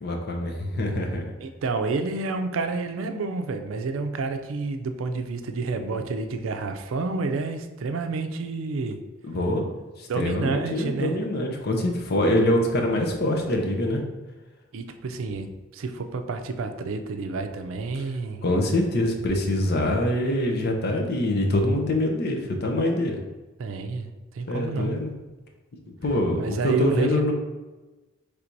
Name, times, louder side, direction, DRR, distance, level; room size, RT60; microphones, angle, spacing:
voice 1, 0.0-1.2 9.3-9.6 10.0-14.0 18.4-23.2 24.5-25.1 26.0-27.3, left 1 dB, 55° left, 3 dB, 0.6 m, -24 dB
voice 2, 1.4-9.0 10.1-11.2 14.7-18.4 23.6-25.0 26.4-27.3, right 3 dB, 85° right, 7 dB, 0.4 m, -29 dB
3.3 x 2.6 x 4.5 m, 1.2 s
head